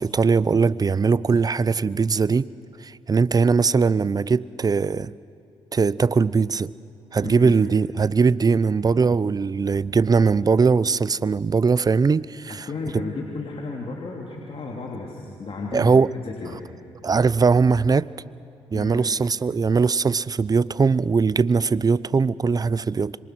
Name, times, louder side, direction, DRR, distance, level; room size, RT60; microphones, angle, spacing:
voice 1, 0.0-2.5 2.8-5.1 5.7-6.7 7.1-12.7 15.7-16.1 17.0-18.1 18.7-23.2, right 5 dB, 30° right, 0.6 m, -20 dB
voice 2, 7.2-7.6 12.5-16.6 18.7-19.1, left 3 dB, 50° left, 3.2 m, -33 dB
26.0 x 23.5 x 6.3 m
hypercardioid pair, 50°, 12 cm